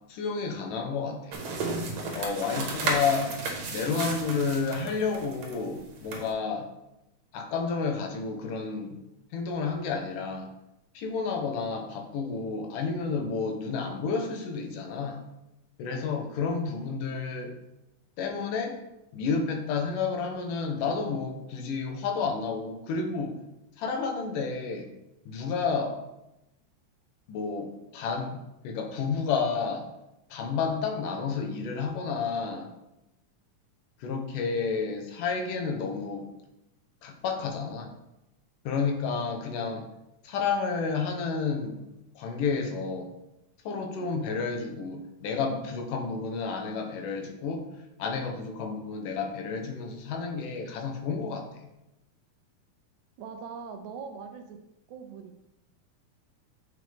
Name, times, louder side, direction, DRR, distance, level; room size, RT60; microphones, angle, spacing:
voice 1, 0.1-1.4 2.1-3.3 3.7-6.7 7.3-9.0 9.3-10.5 11.0-15.2 15.8-17.5 18.2-18.8 19.1-23.4 23.8-24.9 25.3-26.0 27.3-28.4 28.6-29.9 30.3-32.7 34.0-36.3 37.0-37.9 38.7-39.8 40.2-41.8 42.2-43.1 43.7-47.7 48.0-51.5, left 5 dB, 90° left, 4 dB, 2.5 m, -30 dB
sound 1, 1.3-6.3, right 3 dB, 60° right, 2.2 m, -33 dB
voice 2, 53.2-54.6 54.9-55.4, right 6 dB, 75° right, 6 dB, 1.9 m, -41 dB
7.9 x 5.0 x 3.4 m, 0.89 s
omnidirectional pair, 3.6 m